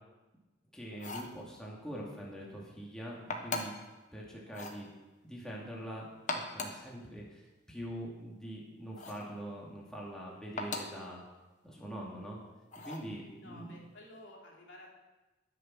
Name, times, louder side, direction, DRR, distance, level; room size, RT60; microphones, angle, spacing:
voice 1, 0.7-3.7 4.1-4.9 5.3-11.2 11.6-12.4 12.8-13.7, equal, 5° left, -4 dB, 2.5 m, -44 dB
sound 1, 0.9-1.4 3.3-3.9 4.5-4.8 6.1-6.9 8.9-9.3 10.6-11.0 12.7-13.1, left 3 dB, 40° left, 1.4 m, -39 dB
voice 2, 13.4-14.9, left 1 dB, 70° left, -2 dB, 3.2 m, -53 dB
20.5 x 6.8 x 6.0 m, 1.1 s
head